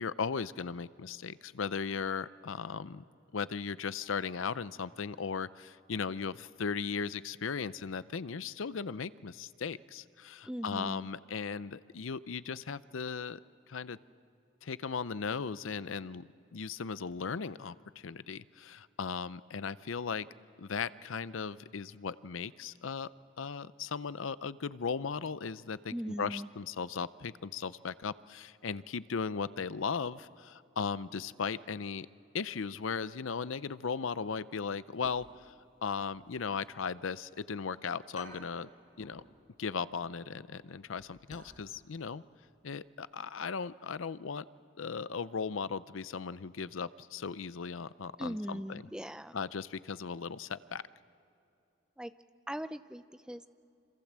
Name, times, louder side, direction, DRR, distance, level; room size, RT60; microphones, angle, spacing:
voice 1, 0.0-3.0 3.3-13.4 13.7-14.0 14.6-20.3 20.6-23.1 23.4-32.1 32.3-35.5 35.8-38.7 39.0-39.2 39.6-42.2 42.6-44.4 44.8-48.8 49.3-50.8, left 5 dB, 80° left, 16 dB, 0.6 m, -37 dB
voice 2, 10.4-11.1 25.9-26.5 48.2-49.4 52.0-52.1 52.5-53.5, equal, 5° right, 11 dB, 0.5 m, -39 dB
sound 1, 34.9-35.7 36.0-37.4 37.7-37.8 38.1-39.3 39.6-39.8 40.2-41.6 41.9-42.0 42.5-42.7 43.0-43.1, left 1 dB, 40° left, 6.2 m, -54 dB
27.0 x 26.5 x 7.4 m, 2.7 s
head